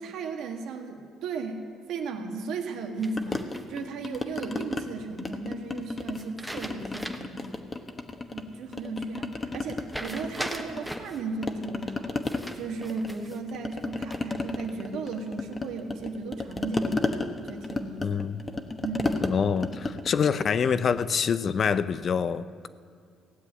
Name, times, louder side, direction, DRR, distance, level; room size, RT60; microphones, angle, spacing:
voice 1, 0.0-1.6 1.9-7.6 8.3-12.1 12.5-17.0 17.4-18.2 18.8-19.2, right 4 dB, 80° right, 4 dB, 1.7 m, -35 dB
sound 1, 3.0-3.9 6.1-7.4 7.8-7.9 9.9-11.2 12.2-13.4 13.8-14.4, right 1 dB, 5° right, 1.2 m, -39 dB
sound 2, 3.2-4.8 5.2-6.3 6.6-8.4 8.7-11.1 11.4-21.2, left 3 dB, 25° left, 1.1 m, -33 dB
voice 2, 18.0-18.4 19.2-22.7, left 6 dB, 45° left, 14 dB, 0.6 m, -26 dB
16.5 x 7.5 x 9.8 m, 2.3 s
cardioid pair, 105°, 0 cm